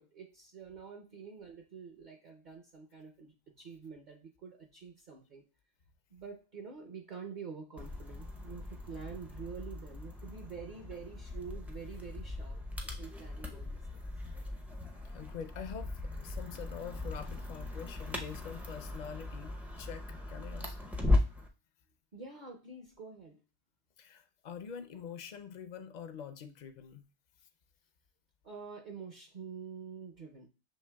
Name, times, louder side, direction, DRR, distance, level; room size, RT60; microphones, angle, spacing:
voice 1, 0.0-5.4 6.1-12.6 13.0-14.0 22.1-23.4 28.4-30.5, right 5 dB, 50° right, 3 dB, 0.7 m, -47 dB
sound 1, 7.8-21.5, left 2 dB, ahead, 0.3 m, -37 dB
voice 2, 15.1-20.8 24.0-27.0, left 7 dB, 50° left, 9 dB, 0.5 m, -45 dB
6.6 x 3.1 x 2.2 m, 0.34 s
omnidirectional pair, 1.2 m